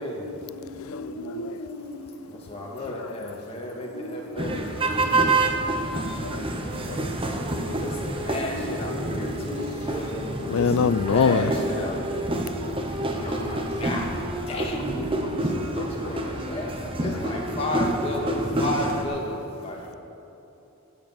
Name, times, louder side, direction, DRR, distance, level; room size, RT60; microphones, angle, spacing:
voice 1, 0.0-2.7 3.6-7.8 8.3-12.0 14.6-15.9 19.7-20.0, equal, ahead, 2.7 m, -40 dB
voice 2, 2.3-5.0 7.6-14.9 15.7-19.9, left 1 dB, 25° left, 2.0 m, -33 dB
sound 1, 4.4-19.0, right 2 dB, 25° right, 1.0 m, -28 dB
voice 3, 10.5-11.4, left 6 dB, 70° left, 0.4 m, -23 dB
18.0 x 8.1 x 6.1 m
head